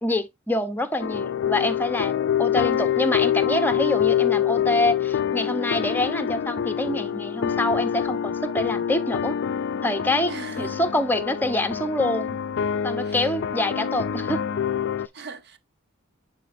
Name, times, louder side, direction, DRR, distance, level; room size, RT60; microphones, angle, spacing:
voice 1, 0.0-9.4 9.8-10.3 10.6-12.4 12.8-14.5, left 1 dB, 10° left, 0.8 m, -26 dB
sound 1, 1.0-15.1, left 9 dB, 60° left, 0.4 m, -26 dB
voice 2, 10.3-10.8 13.0-13.3 13.8-14.0 15.0-15.6, right 3 dB, 55° right, 1.0 m, -40 dB
9.8 x 4.3 x 2.6 m
head